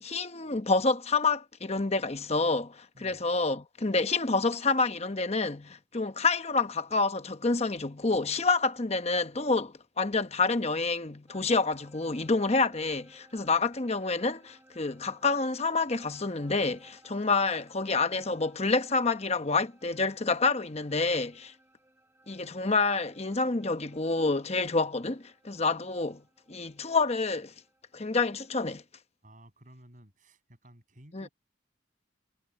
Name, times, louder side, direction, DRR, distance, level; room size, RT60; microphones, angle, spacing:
voice 1, 0.0-21.5 22.3-26.2 26.5-27.5 27.9-28.8 31.1-31.3, left 3 dB, 35° left, 1.0 m, -28 dB
sound 1, 11.3-28.7, right 1 dB, 10° right, 6.5 m, -61 dB
voice 2, 29.2-31.3, right 1 dB, 40° right, 7.2 m, -55 dB
head